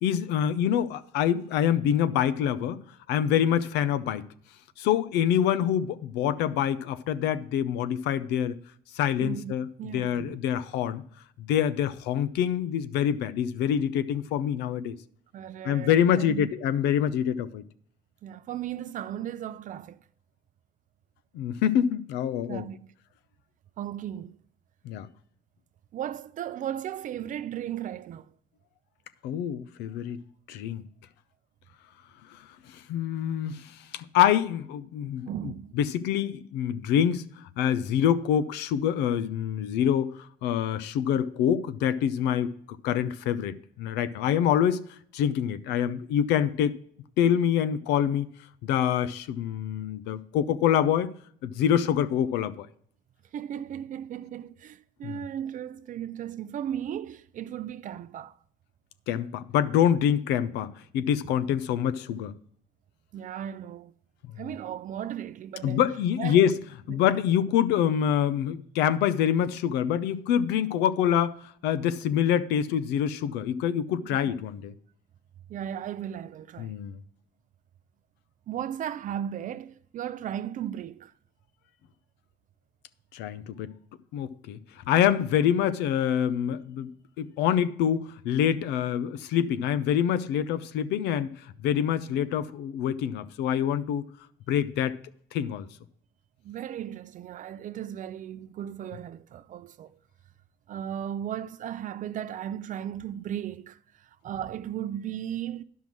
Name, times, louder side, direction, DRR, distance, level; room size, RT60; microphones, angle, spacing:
voice 1, 0.0-2.8 3.1-4.3 4.8-8.6 8.9-9.7 9.9-11.0 11.4-15.0 15.6-17.6 21.3-22.7 24.8-25.1 29.2-30.2 30.5-30.8 32.3-32.4 32.7-35.3 35.8-37.3 37.6-40.1 40.4-42.5 42.8-44.8 45.1-46.7 47.2-48.3 48.6-51.1 51.4-52.7 55.0-55.2 59.1-62.3 65.6-66.6 66.9-74.7 76.6-77.0 83.1-83.7 84.1-84.6 84.9-86.9 87.2-91.3 91.6-94.1 94.5-95.0 95.3-95.7, left 9 dB, 90° left, 0.6 m, -26 dB
voice 2, 9.2-10.4 15.3-16.5 18.2-20.0 22.5-22.9 23.8-24.3 25.9-28.3 35.3-35.8 53.3-58.4 61.2-61.3 63.1-64.0 64.4-65.8 66.2-66.4 66.9-67.1 74.1-74.3 75.5-76.7 78.5-81.1 96.4-100.0 100.7-105.6, right 10 dB, 50° right, 0.5 m, -36 dB
10.5 x 5.6 x 6.1 m
cardioid pair, 110°, 17 cm